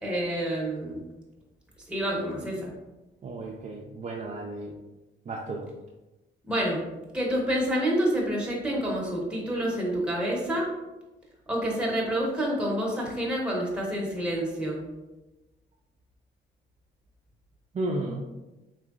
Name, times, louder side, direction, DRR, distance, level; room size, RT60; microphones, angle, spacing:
voice 1, 0.0-1.0 1.9-2.7 6.5-6.9 7.1-10.7 11.5-14.8, right 1 dB, 5° right, -3 dB, 1.0 m, -28 dB
voice 2, 3.2-4.7 5.3-5.7 17.7-18.2, right 2 dB, 35° right, -1 dB, 0.4 m, -33 dB
3.7 x 3.1 x 2.4 m, 1.1 s
cardioid pair, 90°, 20 cm